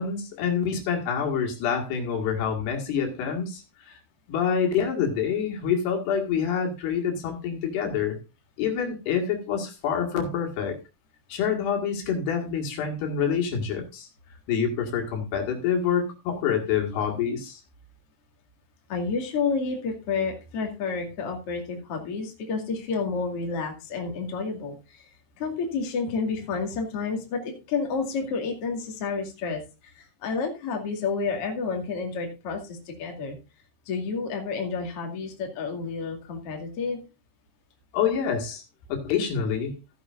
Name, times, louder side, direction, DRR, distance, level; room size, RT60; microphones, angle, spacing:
voice 1, 0.0-4.0 4.3-8.2 8.6-10.8 11.3-14.1 14.5-17.6 37.9-38.6 39.0-39.7, left 7 dB, 75° left, 2 dB, 4.0 m, -27 dB
voice 2, 18.9-25.1 25.4-33.4 33.9-37.0, left 4 dB, 40° left, 1 dB, 2.9 m, -30 dB
15.5 x 10.0 x 2.5 m, 0.28 s
omnidirectional pair, 4.7 m